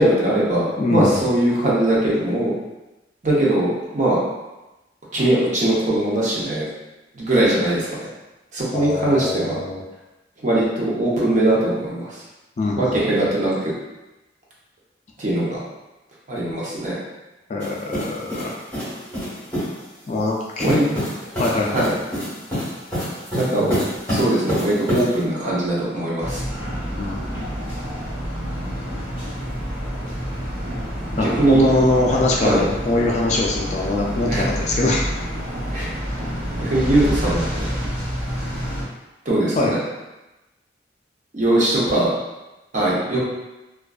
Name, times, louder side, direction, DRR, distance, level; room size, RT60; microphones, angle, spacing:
voice 1, 0.0-2.5 3.2-4.2 5.1-6.7 7.1-7.9 8.5-9.6 10.4-12.2 12.7-13.7 15.2-15.6 16.3-17.0 20.6-20.8 21.5-21.9 23.4-23.7 24.1-26.4 31.2-31.7 32.4-32.6 34.3-34.5 35.7-35.9 36.6-37.4 37.8-37.9 39.3-39.8 41.3-42.1 42.7-43.2, right 1 dB, 40° right, -6 dB, 0.7 m, -20 dB
voice 2, 0.8-1.3 8.7-9.8 12.6-13.3 17.5-18.5 20.1-20.9 21.4-21.9 23.6-23.8 27.0-27.4 28.9-29.0 31.1-35.1 39.6-39.7, left 2 dB, 40° left, -2 dB, 0.3 m, -23 dB
sound 1, 17.6-19.8 20.6-25.2, equal, 10° left, 1.2 m, -28 dB
sound 2, 26.2-38.8, equal, 15° right, 1.0 m, -28 dB
2.5 x 2.2 x 2.3 m, 1.0 s
head